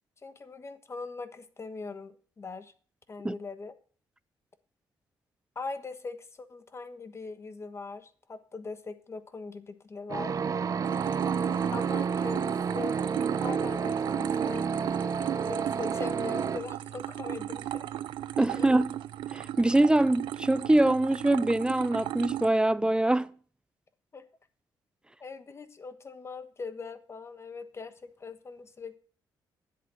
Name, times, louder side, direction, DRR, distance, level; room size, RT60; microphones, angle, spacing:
voice 1, 0.2-2.7 3.1-3.7 5.5-10.4 11.7-13.0 13.4-14.7 15.4-17.9 18.5-18.7 24.1-24.3 25.2-29.0, left 4 dB, 35° left, 1.3 m, -41 dB
sound 1, 10.1-16.6, right 6 dB, 45° right, 0.8 m, -30 dB
sound 2, 10.8-22.5, right 12 dB, 85° right, 0.6 m, -36 dB
voice 2, 18.4-18.9 19.3-23.3, right 1 dB, 10° right, 0.4 m, -24 dB
10.0 x 8.2 x 6.4 m
cardioid pair, 90°, 8 cm